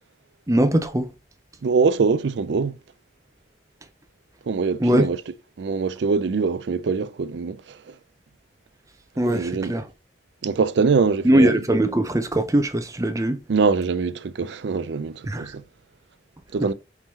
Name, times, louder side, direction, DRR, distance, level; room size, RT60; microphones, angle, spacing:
voice 1, 0.5-1.1 4.8-5.1 9.2-9.8 11.2-13.4 15.3-15.5 16.6-16.7, right 1 dB, 15° right, 0.6 m, -21 dB
voice 2, 1.6-2.8 4.5-5.2 5.6-7.9 9.3-9.8 10.4-11.6 13.5-15.6 16.5-16.7, right 5 dB, 70° right, 0.4 m, -23 dB
4.6 x 3.6 x 2.8 m
head